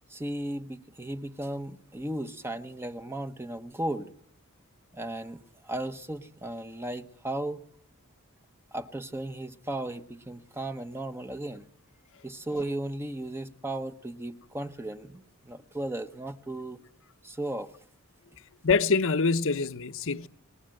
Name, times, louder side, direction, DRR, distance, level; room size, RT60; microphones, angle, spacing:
voice 1, 0.1-4.1 4.9-7.6 8.7-11.7 12.2-16.8 17.2-17.7, right 1 dB, 10° right, 1.1 m, -35 dB
voice 2, 18.6-20.3, left 4 dB, 65° left, 1.0 m, -25 dB
29.5 x 20.0 x 7.8 m
head